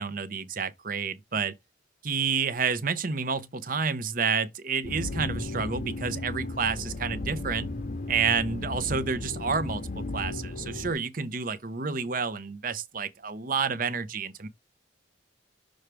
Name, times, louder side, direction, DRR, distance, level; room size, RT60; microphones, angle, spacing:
voice 1, 0.0-1.5 2.0-7.7 8.1-14.5, right 5 dB, 50° right, 0.8 m, -29 dB
sound 1, 4.8-10.9, left 2 dB, 45° left, 0.8 m, -35 dB
6.5 x 3.3 x 4.7 m
head